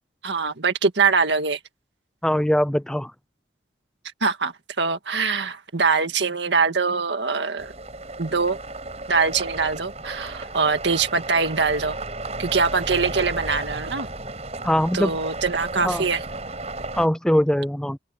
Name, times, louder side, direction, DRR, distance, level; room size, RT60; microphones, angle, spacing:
voice 1, 0.2-1.6 4.2-7.7 8.2-8.6 9.1-12.0 12.4-14.1 14.9-16.2, right 4 dB, 75° right, 1.9 m, -23 dB
voice 2, 2.2-3.1 14.6-15.1 15.8-16.0 16.9-18.0, equal, 5° left, 0.4 m, -21 dB
sound 1, 7.6-17.1, right 2 dB, 35° right, 7.2 m, -34 dB
open air
head